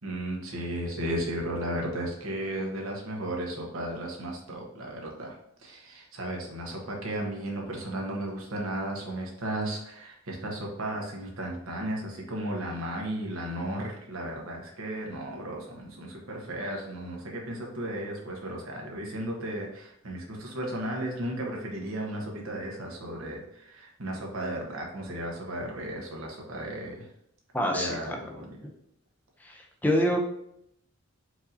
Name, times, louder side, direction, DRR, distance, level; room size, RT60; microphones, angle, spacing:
voice 1, 0.0-5.3 5.6-27.1 27.7-28.6, right 1 dB, 90° right, -1 dB, 1.0 m, -34 dB
voice 2, 27.5-28.7 29.4-30.2, equal, 10° left, 1 dB, 0.4 m, -28 dB
4.6 x 2.6 x 2.7 m, 0.74 s
head